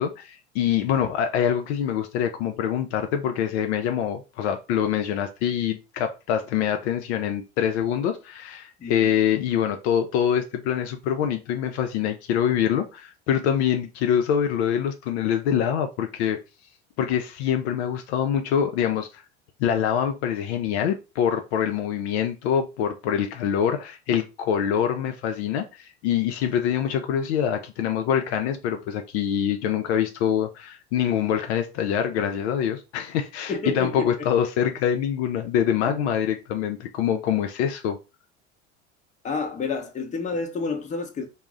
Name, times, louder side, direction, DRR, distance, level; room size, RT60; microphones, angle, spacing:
voice 1, 0.0-16.4 17.0-19.2 19.6-38.0, left 9 dB, 65° left, 0.5 m, -25 dB
voice 2, 33.5-34.1 35.9-36.0 39.2-41.3, left 4 dB, 20° left, 0.6 m, -29 dB
2.3 x 2.1 x 3.6 m
hypercardioid pair, 75°, 37 cm